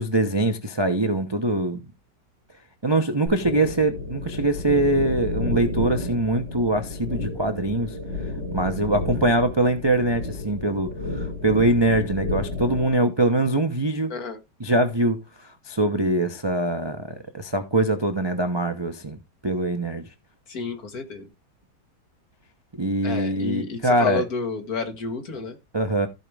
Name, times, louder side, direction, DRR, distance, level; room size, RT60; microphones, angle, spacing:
voice 1, 0.0-1.8 2.8-8.0 8.5-14.1 14.6-19.2 19.4-20.0 22.8-24.2 25.7-26.1, right 2 dB, 25° right, 0.6 m, -23 dB
sound 1, 3.3-12.9, left 2 dB, 75° left, 7.5 m, -31 dB
voice 2, 20.5-21.3 23.0-25.6, left 4 dB, 55° left, 2.0 m, -31 dB
14.5 x 5.1 x 3.4 m
omnidirectional pair, 2.0 m